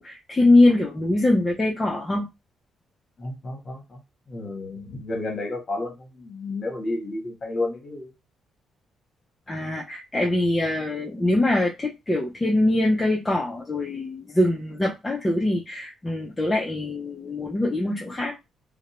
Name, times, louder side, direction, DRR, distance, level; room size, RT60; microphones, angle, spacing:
voice 1, 0.0-2.3 9.5-18.3, left 2 dB, 20° left, 0.5 m, -23 dB
voice 2, 3.2-4.0 4.3-8.1, left 2 dB, 40° left, 1.2 m, -31 dB
2.5 x 2.1 x 2.9 m
cardioid pair, 90°, 0 cm